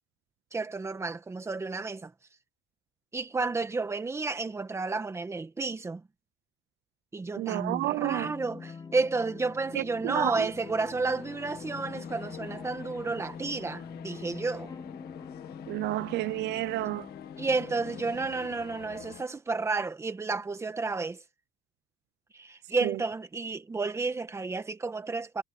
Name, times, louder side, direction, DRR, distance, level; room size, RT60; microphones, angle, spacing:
voice 1, 0.5-2.1 3.1-6.0 7.1-14.7 17.4-21.2 22.3-25.4, right 3 dB, 15° right, 1.6 m, -31 dB
voice 2, 7.4-8.3 9.7-10.5 15.7-17.1 22.8-23.0, right 17 dB, 70° right, 0.6 m, -31 dB
sound 1, 8.0-18.3, left 5 dB, 20° left, 0.8 m, -45 dB
sound 2, 9.1-19.2, left 12 dB, 60° left, 1.7 m, -47 dB
cardioid pair, 165°, 18 cm